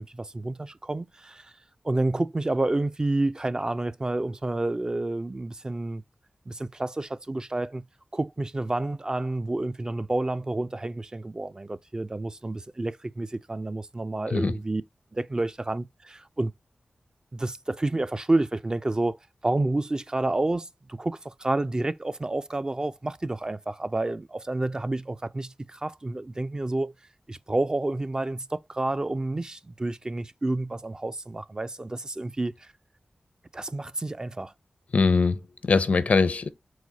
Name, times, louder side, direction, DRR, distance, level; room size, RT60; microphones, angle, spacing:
voice 1, 0.0-1.5 1.8-6.0 6.5-7.8 8.1-14.8 15.1-16.5 17.3-19.2 19.4-26.9 27.3-32.7 33.5-34.5, right 2 dB, 30° right, 0.3 m, -29 dB
voice 2, 34.9-36.5, left 4 dB, 65° left, 0.5 m, -22 dB
4.7 x 2.0 x 3.9 m
cardioid pair, 50°, 3 cm